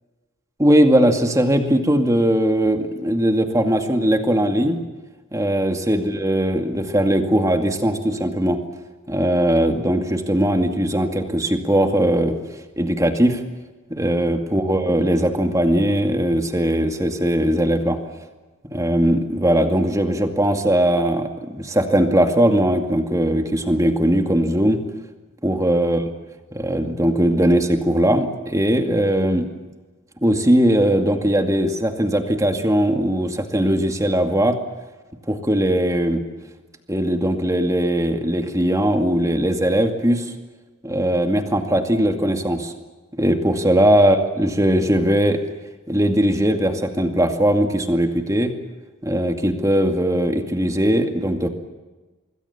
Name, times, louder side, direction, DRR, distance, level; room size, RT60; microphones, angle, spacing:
voice 1, 0.6-4.8 5.3-8.6 9.1-12.4 12.8-13.4 13.9-18.0 18.7-24.8 25.4-26.0 26.5-29.5 30.2-34.6 35.3-36.2 36.9-40.3 40.8-42.7 43.2-45.4 45.9-48.5 49.0-51.5, right 1 dB, 15° right, 5 dB, 2.3 m, -19 dB
26.0 x 22.5 x 7.3 m, 1.2 s
head